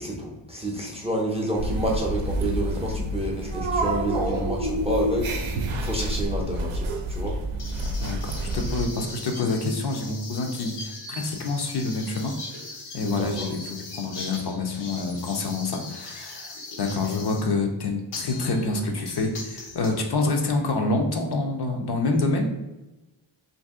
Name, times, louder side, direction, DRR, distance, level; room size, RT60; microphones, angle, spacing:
voice 1, 0.0-7.4 13.0-13.5, right 1 dB, 15° right, -2 dB, 0.4 m, -29 dB
sound 1, 1.6-8.9, right 1 dB, 75° right, 0.5 m, -28 dB
sound 2, 7.6-17.5 18.1-19.9, left 2 dB, 90° left, 0.9 m, -40 dB
voice 2, 8.0-12.3 12.9-22.5, left 3 dB, 55° left, 3 dB, 0.5 m, -27 dB
2.6 x 2.6 x 3.5 m, 1.0 s
wide cardioid pair, 140°, 48 cm